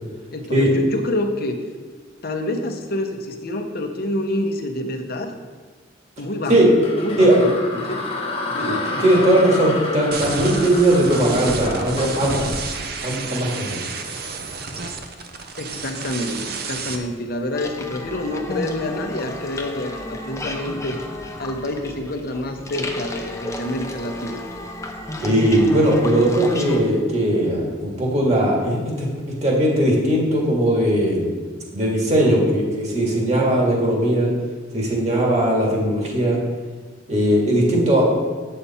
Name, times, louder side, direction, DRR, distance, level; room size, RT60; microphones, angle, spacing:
voice 1, 0.3-1.6 2.2-5.3 6.2-6.6 7.0-8.1 8.5-8.7 15.6-21.0 21.4-24.4, left 1 dB, 55° left, 5 dB, 0.9 m, -27 dB
sound 1, 6.5-13.7, left 2 dB, 30° left, 1.1 m, -30 dB
voice 2, 9.0-12.5 13.0-13.8 25.2-29.1 29.4-31.3 31.7-34.3 34.7-36.4 37.1-38.0, right 1 dB, 35° right, -3 dB, 2.1 m, -19 dB
sound 2, 10.1-17.0, right 4 dB, 55° right, 0.8 m, -31 dB
sound 3, 17.5-26.8, left 1 dB, 15° left, 0.7 m, -32 dB
8.5 x 6.7 x 4.3 m, 1.4 s
head